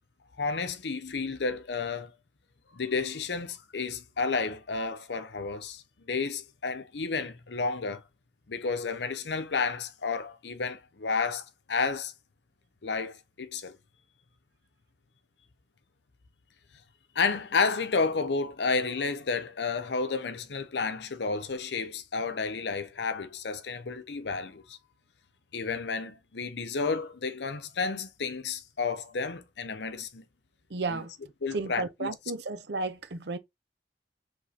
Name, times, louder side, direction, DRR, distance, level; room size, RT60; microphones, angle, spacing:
voice 1, 0.4-2.1 2.7-8.0 8.5-12.1 12.8-13.8 17.1-24.8 25.5-30.2 30.9-31.0 31.4-32.1, left 4 dB, 80° left, 0.7 m, -31 dB
voice 2, 30.7-31.1 31.5-33.4, right 3 dB, 75° right, 0.7 m, -33 dB
4.9 x 3.7 x 2.8 m
head